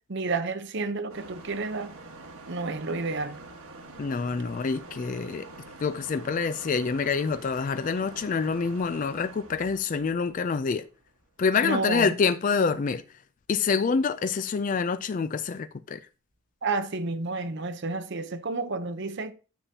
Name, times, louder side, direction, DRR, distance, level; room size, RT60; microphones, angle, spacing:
voice 1, 0.1-1.9 2.5-3.4 11.6-12.2 16.6-19.3, right 3 dB, 55° right, 0.7 m, -30 dB
sound 1, 1.1-11.3, right 2 dB, 80° right, 1.5 m, -46 dB
voice 2, 4.0-5.5 5.8-10.8 11.4-13.0 13.5-16.0, left 5 dB, 35° left, 0.3 m, -26 dB
9.8 x 7.4 x 2.8 m
head